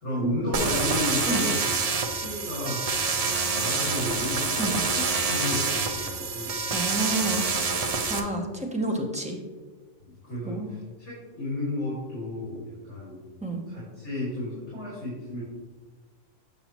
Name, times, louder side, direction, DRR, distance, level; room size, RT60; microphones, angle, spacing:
voice 1, 0.0-1.6 2.0-2.8 3.5-4.6 4.9-6.6 10.0-10.6 11.0-13.2 13.7-15.4, left 2 dB, 65° left, -7 dB, 2.4 m, -33 dB
sound 1, 0.5-8.2, right 4 dB, 50° right, 0.4 m, -27 dB
voice 2, 6.7-7.5 8.1-9.4 10.4-10.7 13.4-13.7, right 2 dB, 5° right, 0 dB, 0.6 m, -29 dB
7.0 x 5.7 x 2.9 m, 1.3 s
omnidirectional pair, 1.3 m